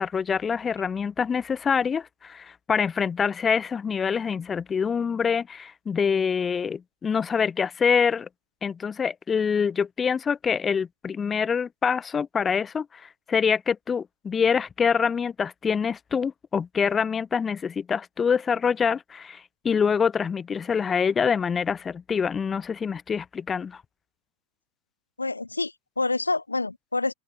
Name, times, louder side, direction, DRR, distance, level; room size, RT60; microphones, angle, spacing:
voice 1, 0.0-8.3 8.6-23.8, left 6 dB, 20° left, 1.0 m, -25 dB
voice 2, 25.2-27.1, left 3 dB, 80° left, 1.1 m, -27 dB
open air
figure-of-eight pair, 90°, 0 cm